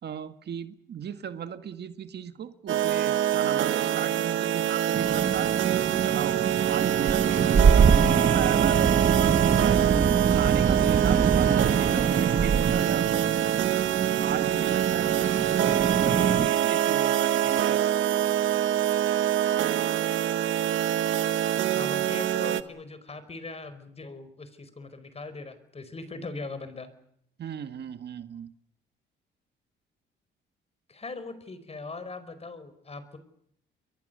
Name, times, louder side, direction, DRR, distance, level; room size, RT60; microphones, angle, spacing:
voice 1, 0.0-8.0 8.3-9.8 10.3-13.3 14.2-18.0 27.4-28.5, right 8 dB, 55° right, 10 dB, 1.8 m, -37 dB
sound 1, 2.7-22.6, right 11 dB, 75° right, 1.2 m, -25 dB
sound 2, 4.9-16.5, right 6 dB, 40° right, 1.6 m, -25 dB
voice 2, 21.7-26.9 30.9-33.2, left 3 dB, 30° left, 12 dB, 4.9 m, -40 dB
29.5 x 22.5 x 6.8 m, 0.70 s
cardioid pair, 90°, 20 cm